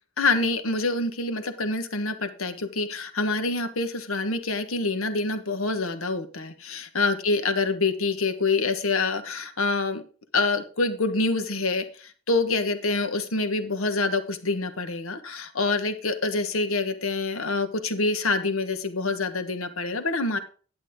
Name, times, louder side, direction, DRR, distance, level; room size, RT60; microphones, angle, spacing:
voice 1, 0.2-10.0 10.3-20.4, left 3 dB, 70° left, 9 dB, 1.4 m, -26 dB
11.0 x 8.5 x 3.7 m, 0.39 s
head